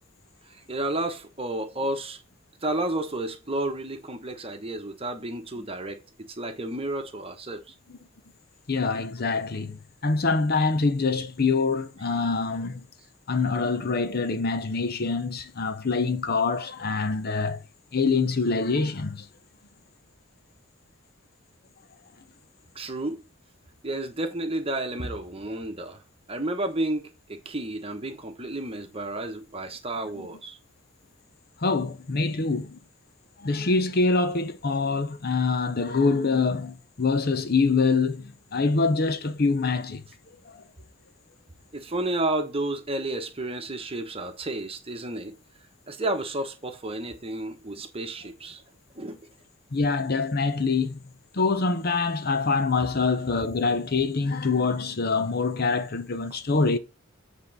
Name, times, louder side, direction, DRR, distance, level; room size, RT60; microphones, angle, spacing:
voice 1, 0.7-2.2 2.6-6.0 6.4-7.7 22.7-23.2 23.8-26.0 26.3-30.6 41.7-45.4 45.9-48.6 48.9-49.2, right 2 dB, 25° right, 1.1 m, -31 dB
voice 2, 8.7-12.8 13.3-17.6 17.9-19.3 31.6-32.8 33.4-40.0 40.5-40.6 49.7-51.0 51.3-56.8, left 4 dB, 45° left, 0.7 m, -25 dB
8.4 x 3.7 x 5.5 m
head